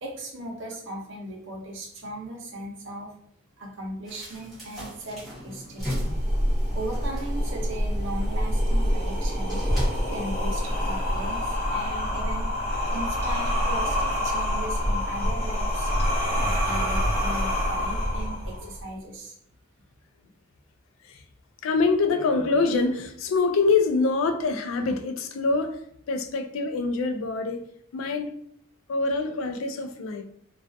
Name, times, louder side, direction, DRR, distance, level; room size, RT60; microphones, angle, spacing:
voice 1, 0.0-3.1 3.6-5.9 6.7-9.6 10.1-12.5 12.9-15.9 16.4-19.3, right 1 dB, 60° right, -1 dB, 0.7 m, -37 dB
sound 1, 4.1-10.1, equal, ahead, 1.0 m, -36 dB
sound 2, 5.8-18.8, equal, 30° left, 0.8 m, -26 dB
voice 2, 21.6-25.8 26.1-27.6 27.9-28.3 28.9-30.2, left 4 dB, 70° left, 6 dB, 0.3 m, -25 dB
2.3 x 2.3 x 2.5 m, 0.67 s
head